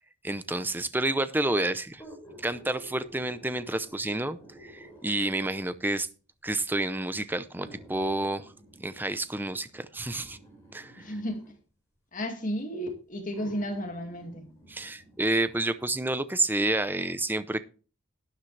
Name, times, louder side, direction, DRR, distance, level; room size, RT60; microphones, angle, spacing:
voice 1, 0.2-2.0 2.4-6.1 6.4-8.5 8.8-10.4 10.7-11.0 14.7-17.7, right 2 dB, 10° right, 0.6 m, -29 dB
sound 1, 2.0-5.6 6.5-6.6 7.6-11.6 12.6-12.7 13.3-16.0 16.4-16.5, right 1 dB, 15° left, 5.3 m, -52 dB
voice 2, 11.0-11.4 12.1-14.5, equal, 40° left, 2.1 m, -33 dB
12.0 x 10.5 x 3.3 m
head